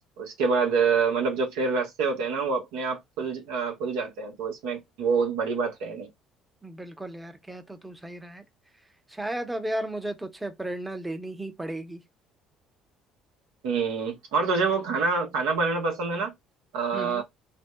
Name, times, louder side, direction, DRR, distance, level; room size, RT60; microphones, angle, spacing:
voice 1, 0.2-6.1 13.6-16.3 16.7-17.2, right 5 dB, 75° right, 0.8 m, -26 dB
voice 2, 6.6-8.4 9.1-12.0 16.9-17.2, right 1 dB, 10° right, 0.8 m, -34 dB
2.6 x 2.1 x 2.2 m
hypercardioid pair, 60°, 0 cm